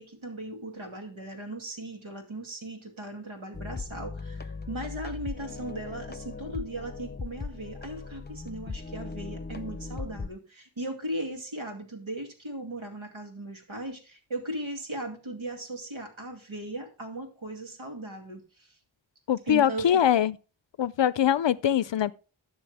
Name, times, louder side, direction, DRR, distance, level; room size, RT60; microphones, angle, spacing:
voice 1, 0.0-18.8 19.4-20.0, right 1 dB, 75° right, 2.5 m, -38 dB
sound 1, 3.5-10.3, left 4 dB, 20° left, 0.8 m, -38 dB
voice 2, 19.3-20.3 20.8-22.1, left 10 dB, 65° left, 0.5 m, -23 dB
12.0 x 6.3 x 3.4 m
wide cardioid pair, 45°, 48 cm